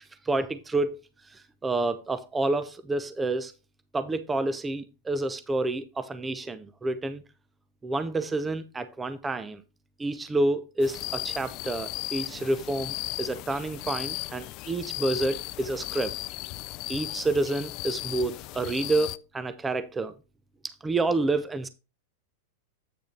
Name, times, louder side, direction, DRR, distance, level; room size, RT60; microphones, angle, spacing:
voice 1, 0.2-1.0 1.3-3.5 3.9-7.2 7.8-9.6 10.0-16.1 16.9-20.1 20.6-21.7, right 2 dB, 15° right, 0.6 m, -29 dB
sound 1, 10.8-19.2, left 19 dB, 45° left, 0.3 m, -36 dB
8.4 x 6.3 x 3.2 m
hypercardioid pair, 120°, 0 cm